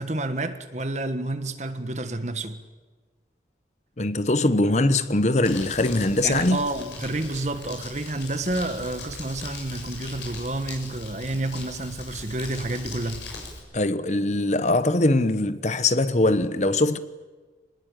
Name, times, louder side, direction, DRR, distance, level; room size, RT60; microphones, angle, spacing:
voice 1, 0.0-2.6 6.2-13.3, right 2 dB, 40° right, 1.5 m, -29 dB
voice 2, 4.0-6.7 13.7-17.0, left 2 dB, 40° left, 1.0 m, -22 dB
Crumpling crinkling, 5.4-13.6, left 3 dB, 85° left, 7.0 m, -39 dB
25.5 x 20.5 x 9.1 m
head